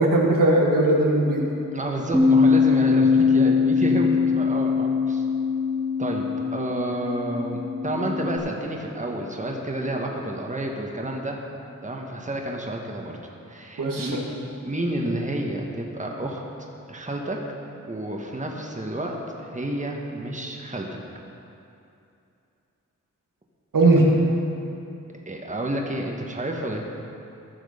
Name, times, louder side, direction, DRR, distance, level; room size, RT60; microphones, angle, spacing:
voice 1, 0.0-1.5 13.8-14.1 23.7-24.1, right 2 dB, 85° right, -2 dB, 1.7 m, -19 dB
voice 2, 1.7-5.2 6.0-6.3 6.5-11.4 11.8-14.2 14.6-16.4 16.9-17.4 17.9-19.2 19.4-20.8 25.3-26.8, right 1 dB, 25° right, 0 dB, 1.4 m, -29 dB
Bass guitar, 2.1-8.4, left 5 dB, ahead, 1.0 m, -22 dB
15.0 x 6.4 x 5.1 m, 2.7 s
cardioid pair, 55°, 32 cm